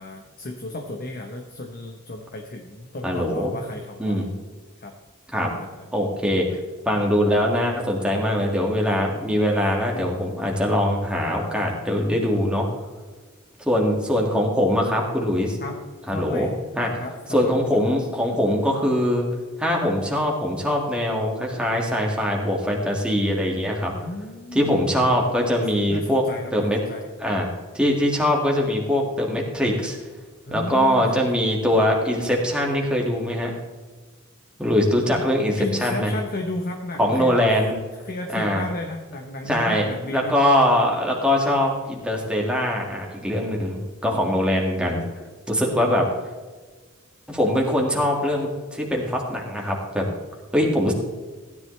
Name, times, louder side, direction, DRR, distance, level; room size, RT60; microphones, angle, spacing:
voice 1, 0.0-4.3 4.8-4.9 5.4-5.9 15.6-15.8 16.1-16.5 17.0-17.6 24.0-24.8 25.9-27.1 30.4-31.2 35.6-37.6 38.0-40.4, left 2 dB, 45° left, 3 dB, 1.0 m, -34 dB
voice 2, 3.0-3.5 4.0-4.3 5.3-5.5 5.9-6.6 6.9-12.7 13.7-15.6 16.1-16.5 16.8-16.9 17.3-19.2 19.6-23.9 24.5-26.2 26.5-26.8 27.2-27.5 27.7-30.0 30.5-33.5 34.6-36.1 37.0-37.8 38.3-38.6 39.4-45.0 45.5-46.1 47.3-50.1 50.5-50.9, equal, 5° right, -1 dB, 2.0 m, -22 dB
16.0 x 10.5 x 3.3 m, 1.4 s
head